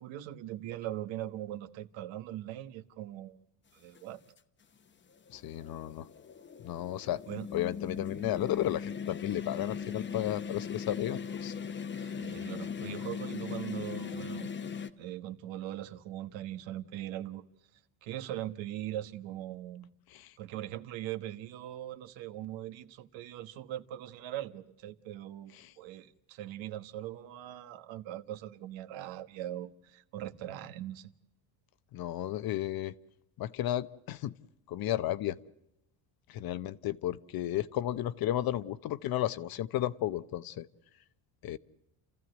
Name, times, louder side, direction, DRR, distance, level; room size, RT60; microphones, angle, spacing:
voice 1, 0.0-3.4 3.7-4.2 7.3-7.5 12.0-14.5 15.0-17.4 18.0-19.9 20.4-31.1, right 13 dB, 70° right, 1.4 m, -40 dB
sound 1, 3.9-4.0 5.1-14.9, left 6 dB, 25° left, 0.9 m, -39 dB
voice 2, 5.3-6.1 6.6-7.2 7.5-11.5 20.1-20.3 25.6-25.7 31.9-32.9 33.4-34.3 34.7-35.4 36.3-40.7 41.4-41.6, left 13 dB, 50° left, 0.8 m, -33 dB
30.0 x 15.0 x 7.9 m
cardioid pair, 140°, 47 cm